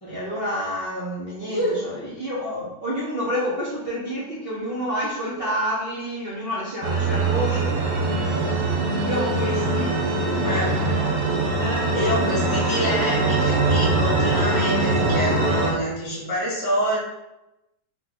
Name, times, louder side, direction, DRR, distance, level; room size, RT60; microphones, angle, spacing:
voice 1, 0.0-7.7 9.0-10.0 11.6-11.9, equal, 45° right, -7 dB, 0.7 m, -29 dB
sound 1, 6.8-15.7, right 2 dB, 65° right, 1.2 m, -22 dB
voice 2, 10.4-10.7 11.9-17.0, equal, 15° left, -6 dB, 1.4 m, -26 dB
3.9 x 2.9 x 4.1 m, 0.94 s
omnidirectional pair, 1.9 m